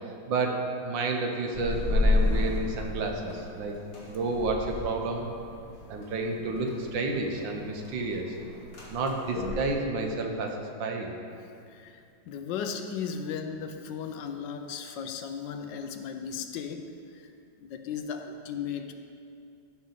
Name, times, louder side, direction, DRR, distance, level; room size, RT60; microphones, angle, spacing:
voice 1, 0.3-3.8 4.1-5.3 5.9-8.3 8.9-11.1, right 3 dB, 75° right, 2 dB, 1.7 m, -30 dB
sound 1, 1.5-9.5, left 2 dB, 50° left, 2.2 m, -31 dB
voice 2, 11.7-17.3 17.6-18.9, left 7 dB, 75° left, 6 dB, 1.3 m, -36 dB
14.5 x 6.1 x 4.0 m, 2.5 s
omnidirectional pair, 2.0 m